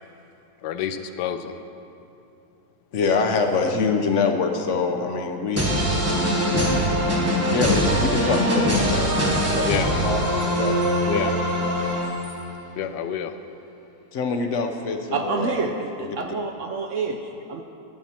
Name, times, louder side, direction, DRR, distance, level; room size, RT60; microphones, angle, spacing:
voice 1, 0.6-1.6 9.6-9.9 11.1-11.4 12.8-13.3, left 9 dB, 90° left, 9 dB, 1.2 m, -28 dB
voice 2, 2.9-5.7 7.5-9.1 9.5-9.7 10.0-11.4 14.1-15.7 16.0-16.3, left 4 dB, 60° left, 5 dB, 0.8 m, -25 dB
sound 1, 5.6-12.5, equal, 10° right, 1.2 m, -22 dB
voice 3, 15.1-17.6, right 4 dB, 65° right, 4 dB, 0.7 m, -28 dB
12.5 x 8.8 x 4.2 m, 2.8 s
omnidirectional pair, 1.7 m